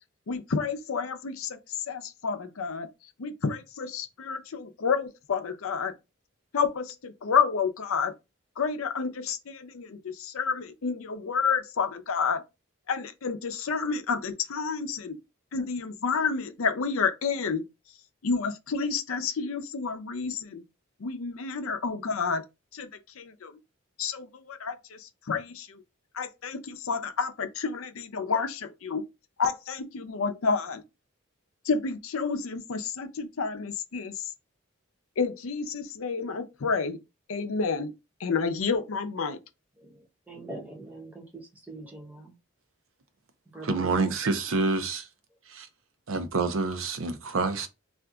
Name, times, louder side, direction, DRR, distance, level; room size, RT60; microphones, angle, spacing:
voice 1, 0.3-2.9 3.2-5.9 6.5-8.1 8.6-12.4 12.9-15.2 15.5-17.6 18.2-20.6 21.0-22.4 22.7-22.9 23.2-23.5 24.0-25.8 26.1-29.0 29.4-30.8 31.6-34.3 35.2-37.0 37.3-37.9 38.2-39.4, left 5 dB, 85° left, 0.5 m, -30 dB
voice 2, 40.3-41.2 41.7-42.3 43.5-44.1, right 2 dB, 10° right, 0.7 m, -42 dB
voice 3, 43.6-45.1 45.5-45.7 46.1-47.7, right 3 dB, 75° right, 0.5 m, -27 dB
2.5 x 2.3 x 3.7 m
head